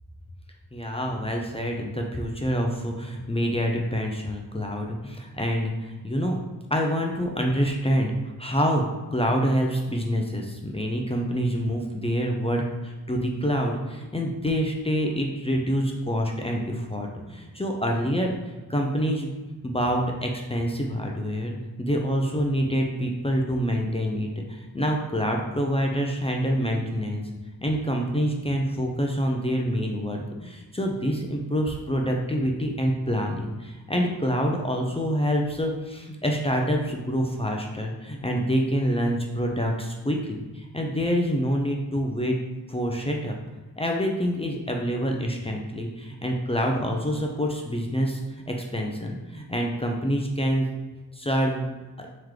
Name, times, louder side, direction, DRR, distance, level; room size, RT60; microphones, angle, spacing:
voice 1, 0.7-6.4 6.7-18.4 18.7-19.3 19.6-27.2 27.6-42.4 42.7-43.3 43.8-48.2 48.5-50.7 51.1-51.6 52.0-52.1, equal, 15° left, 0 dB, 0.6 m, -26 dB
3.8 x 3.1 x 3.2 m, 1.2 s
cardioid pair, 50°, 38 cm